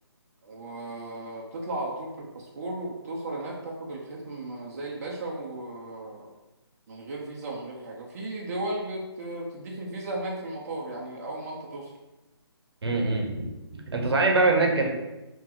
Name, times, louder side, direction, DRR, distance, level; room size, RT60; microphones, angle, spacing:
voice 1, 0.4-6.3 6.9-11.9, right 2 dB, 40° right, -3 dB, 0.5 m, -35 dB
voice 2, 12.8-13.5 13.9-14.9, right 3 dB, 70° right, 2 dB, 0.8 m, -23 dB
2.9 x 2.8 x 3.7 m, 1.0 s
hypercardioid pair, 155°, 14 cm